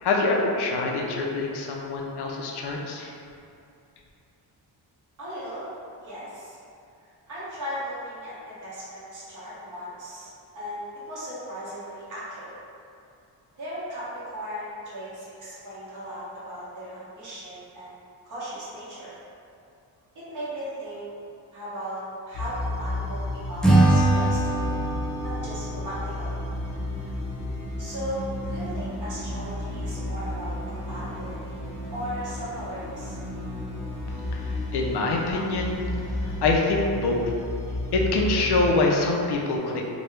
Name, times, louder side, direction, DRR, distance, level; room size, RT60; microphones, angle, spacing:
voice 1, 0.0-3.1 34.3-37.3 37.9-39.8, left 2 dB, 65° left, 0 dB, 0.5 m, -25 dB
voice 2, 5.2-5.7 6.0-6.6 7.0-10.3 10.5-12.5 13.5-18.0 18.2-19.1 20.1-21.1 21.5-24.7 25.2-26.4 27.0-27.1 27.8-31.6 31.9-33.2, equal, 45° right, -11 dB, 1.2 m, -37 dB
sound 1, 22.3-38.7, left 1 dB, 35° left, 0.7 m, -33 dB
Acoustic guitar / Strum, 23.6-26.9, right 2 dB, ahead, 0.3 m, -23 dB
3.0 x 2.2 x 3.2 m, 2.6 s
wide cardioid pair, 140°, 43 cm